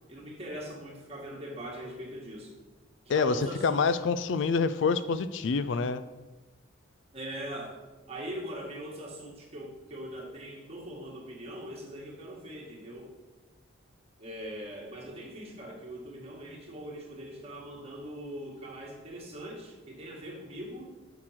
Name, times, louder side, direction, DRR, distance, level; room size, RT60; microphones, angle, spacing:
voice 1, 0.1-2.5 3.1-4.0 5.7-5.8 7.1-7.8 8.1-13.1 14.2-20.9, right 1 dB, 30° right, -2 dB, 1.8 m, -41 dB
voice 2, 3.1-6.0, left 5 dB, 60° left, 13 dB, 0.4 m, -27 dB
6.6 x 6.0 x 5.8 m, 1.2 s
head